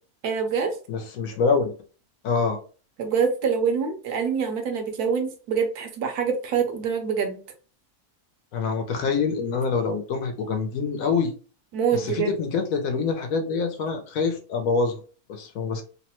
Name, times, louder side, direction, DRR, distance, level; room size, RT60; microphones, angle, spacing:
voice 1, 0.2-0.7 3.0-7.4 11.7-12.3, right 6 dB, 75° right, 5 dB, 1.2 m, -25 dB
voice 2, 0.9-1.7 2.2-2.6 8.5-11.3 11.9-15.0 15.3-15.8, left 5 dB, 70° left, 5 dB, 0.9 m, -25 dB
3.2 x 2.1 x 2.9 m, 0.38 s
omnidirectional pair, 1.6 m